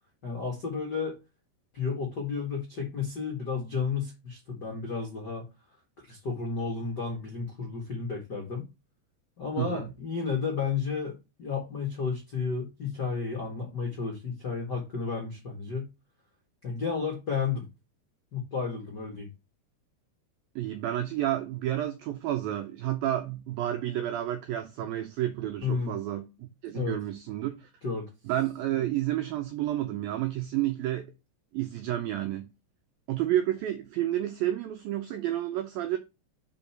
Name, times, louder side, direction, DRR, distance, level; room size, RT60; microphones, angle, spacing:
voice 1, 0.2-1.2 1.7-5.4 6.0-8.7 9.4-15.9 16.6-17.6 18.3-19.3 25.6-26.0 26.7-27.0 27.8-28.1, left 5 dB, 60° left, 1.1 m, -32 dB
voice 2, 9.6-9.9 20.6-27.7 28.3-31.1 31.5-32.5 33.1-36.0, right 13 dB, 85° right, 2.1 m, -30 dB
5.4 x 5.4 x 5.7 m
omnidirectional pair, 5.0 m